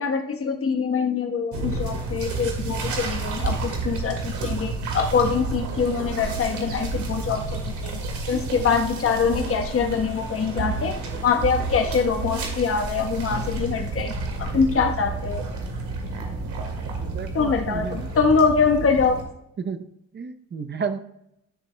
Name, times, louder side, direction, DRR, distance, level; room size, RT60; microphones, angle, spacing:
voice 1, 0.0-8.0 8.3-15.4 17.3-19.2, left 5 dB, 45° left, 6 dB, 1.2 m, -24 dB
sound 1, 1.5-19.2, right 3 dB, 80° right, 2.1 m, -30 dB
voice 2, 17.0-18.0 19.6-19.9 20.1-21.0, right 6 dB, 35° right, 10 dB, 0.7 m, -32 dB
13.0 x 6.8 x 2.2 m, 0.79 s
cardioid pair, 90°, 30 cm